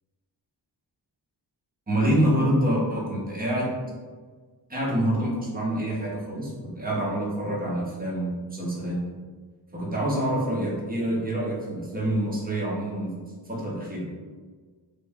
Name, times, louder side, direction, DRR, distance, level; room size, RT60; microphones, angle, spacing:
voice 1, 1.9-3.7 4.7-9.0 9.7-13.1 13.5-14.1, right 1 dB, 20° right, -4 dB, 0.9 m, -26 dB
3.3 x 2.5 x 3.4 m, 1.5 s
wide cardioid pair, 110°, 43 cm